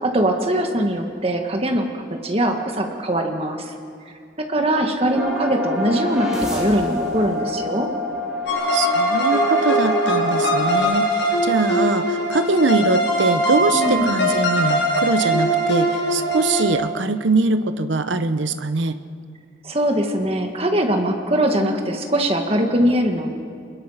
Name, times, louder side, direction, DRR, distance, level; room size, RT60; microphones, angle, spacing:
voice 1, 0.0-3.7 4.4-7.9 13.7-14.1 19.6-23.3, right 1 dB, 30° right, 3 dB, 1.8 m, -21 dB
sound 1, 5.1-10.8, left 1 dB, 5° right, 6.1 m, -26 dB
sound 2, 8.5-16.7, right 1 dB, 65° left, 6.6 m, -21 dB
voice 2, 8.7-19.0, right 3 dB, 75° right, 10 dB, 1.0 m, -22 dB
29.5 x 21.0 x 5.8 m, 2.4 s
head